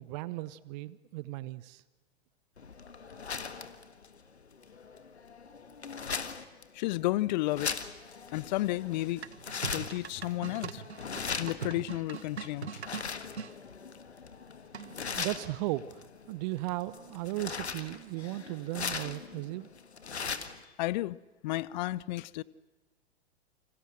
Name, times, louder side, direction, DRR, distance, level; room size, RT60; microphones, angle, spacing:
voice 1, 0.0-1.8 15.2-19.7, right 17 dB, 40° right, 0.9 m, -36 dB
sound 1, 2.6-20.6, left 5 dB, 75° left, 1.8 m, -40 dB
voice 2, 6.7-7.7 8.3-9.2 9.6-10.8 11.4-12.8 20.8-21.2 21.4-22.4, left 17 dB, 45° left, 0.8 m, -32 dB
sound 2, 9.2-13.5 14.7-15.2, right 7 dB, 75° right, 0.9 m, -42 dB
29.0 x 26.0 x 6.4 m
figure-of-eight pair, 100°, 33 cm